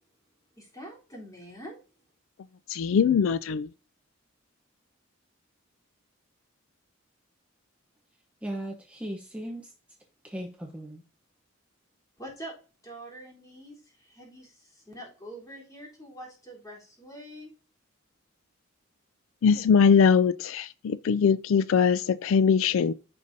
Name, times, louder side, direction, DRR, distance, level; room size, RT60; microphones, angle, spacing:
voice 1, 0.6-1.8 12.2-12.6 12.8-17.5, right 1 dB, 15° left, 3.6 m, -45 dB
voice 2, 2.7-3.7 19.4-22.9, left 6 dB, 70° left, 0.3 m, -22 dB
voice 3, 8.4-9.7 10.2-11.0, right 1 dB, 5° right, 0.9 m, -37 dB
14.5 x 5.3 x 2.7 m
head